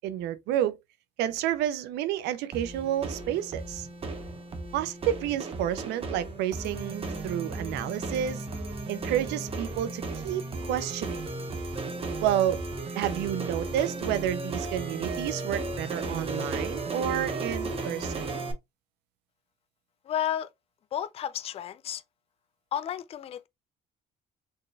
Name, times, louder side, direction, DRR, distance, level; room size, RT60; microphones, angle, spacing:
voice 1, 0.0-0.8 1.2-3.9 4.7-8.5 8.9-11.2 12.2-12.6 12.9-18.2, right 11 dB, 85° right, 0.5 m, -30 dB
sound 1, 2.5-18.5, right 3 dB, 35° right, 0.9 m, -35 dB
voice 2, 20.0-20.5 20.9-22.0 22.7-23.5, left 10 dB, 35° left, 0.4 m, -32 dB
4.5 x 3.1 x 2.2 m
cardioid pair, 110°, 17 cm